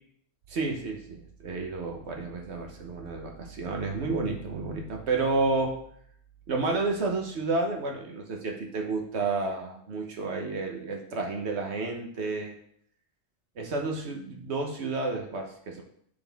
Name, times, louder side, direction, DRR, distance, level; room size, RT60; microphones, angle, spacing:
voice 1, 0.5-5.7 6.5-12.6 13.6-15.8, right 3 dB, 80° right, 2 dB, 1.3 m, -31 dB
6.7 x 4.1 x 3.5 m, 0.64 s
omnidirectional pair, 1.1 m